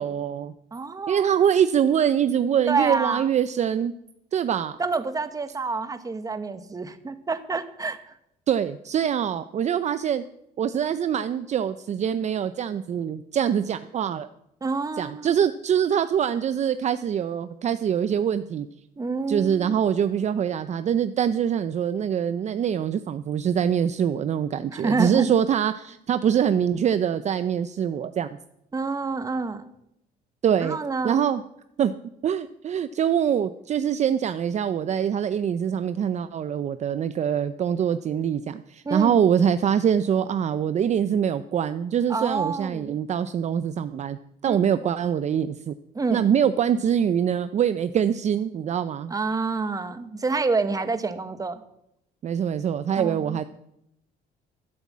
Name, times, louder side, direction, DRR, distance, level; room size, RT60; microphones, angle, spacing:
voice 1, 0.0-0.5 1.1-3.9 4.3-4.8 8.5-10.2 10.6-14.3 15.0-18.7 19.3-28.3 30.4-30.8 31.0-31.4 31.8-31.9 32.2-44.2 44.4-45.7 46.1-49.1 52.2-53.4, right 8 dB, 45° right, 12 dB, 0.6 m, -24 dB
voice 2, 0.7-1.2 2.7-3.3 4.8-8.1 14.6-15.4 19.0-19.8 24.7-25.3 28.7-29.6 30.6-31.2 38.8-39.2 42.1-43.0 44.4-44.6 45.9-46.2 49.1-51.6 53.0-53.4, right 4 dB, 20° right, 10 dB, 1.3 m, -28 dB
12.5 x 9.4 x 7.4 m, 0.80 s
cardioid pair, 110°, 17 cm